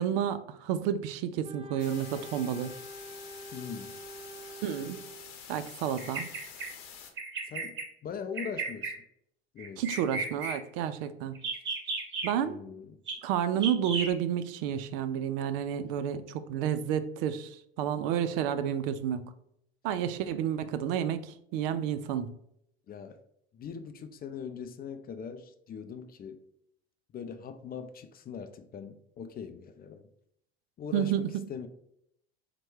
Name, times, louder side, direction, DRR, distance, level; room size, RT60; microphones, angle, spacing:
voice 1, 0.0-2.7 4.6-5.0 5.5-6.3 9.8-11.4 12.2-12.6 13.2-19.3 19.8-22.3 30.9-31.4, right 9 dB, 65° right, 0.5 m, -30 dB
Wind instrument woodwind instrument, 1.4-5.4, equal, 20° right, 0.6 m, -46 dB
sound 1, 1.8-7.1, left 7 dB, 70° left, 0.8 m, -47 dB
voice 2, 3.5-4.0 6.0-6.1 7.5-9.0 9.5-9.8 12.4-13.0 22.9-23.2 23.5-26.4 27.1-30.1 30.8-31.7, left 6 dB, 30° left, 0.4 m, -41 dB
Bird vocalization bird call bird song, 6.0-6.7 7.2-7.8 8.4-9.0 9.6-10.6 11.3-12.3 13.1-13.2 13.6-14.1, right 3 dB, 35° right, 1.3 m, -34 dB
4.4 x 2.2 x 4.5 m
hypercardioid pair, 75°, 31 cm